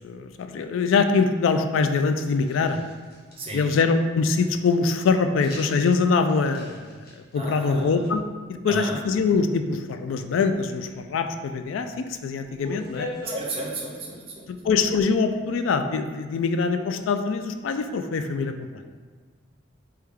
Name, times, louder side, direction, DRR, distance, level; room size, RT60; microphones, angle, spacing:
voice 1, 0.0-2.8 3.5-7.0 7.3-8.2 8.5-13.1 14.5-18.5, left 4 dB, 85° left, 8 dB, 0.3 m, -23 dB
sound 1, 2.3-3.9 5.4-6.0 6.3-8.1 8.7-9.0 10.5-10.9 11.8-11.9 12.1-13.5, left 2 dB, 50° left, 0.9 m, -41 dB
voice 2, 3.4-3.7 7.3-8.0 8.7-9.0 13.2-14.5, right 2 dB, 30° right, -2 dB, 0.5 m, -33 dB
3.4 x 3.2 x 3.5 m, 1.5 s
head